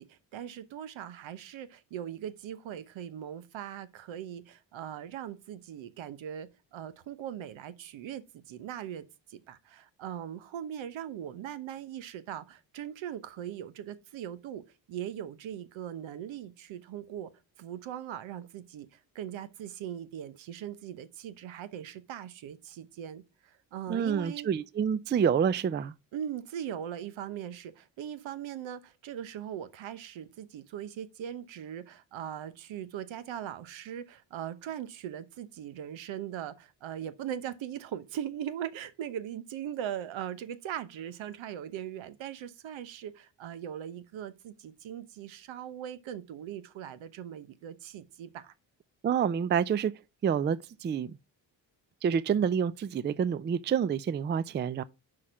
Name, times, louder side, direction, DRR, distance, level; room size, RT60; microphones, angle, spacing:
voice 1, 0.0-9.0 9.3-14.6 14.9-17.3 17.6-24.5 26.1-48.5, right 10 dB, 80° right, 1.0 m, -40 dB
voice 2, 23.9-25.9 49.0-49.9 50.2-51.2 52.0-54.8, right 7 dB, 25° right, 0.4 m, -28 dB
5.8 x 4.9 x 5.7 m
cardioid pair, 90°, 46 cm